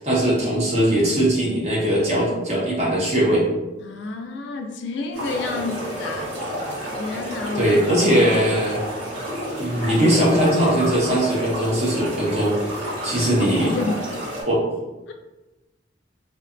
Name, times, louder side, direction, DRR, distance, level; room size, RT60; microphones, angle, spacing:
voice 1, 0.0-3.4 7.5-8.8 9.6-13.7 14.5-14.6, right 1 dB, 35° right, -5 dB, 0.7 m, -20 dB
voice 2, 3.8-7.8 13.4-14.0, left 3 dB, 70° left, 3 dB, 0.3 m, -30 dB
sound 1, 5.1-14.4, equal, 90° right, 1.5 m, -30 dB
2.6 x 2.2 x 2.5 m, 1.1 s
head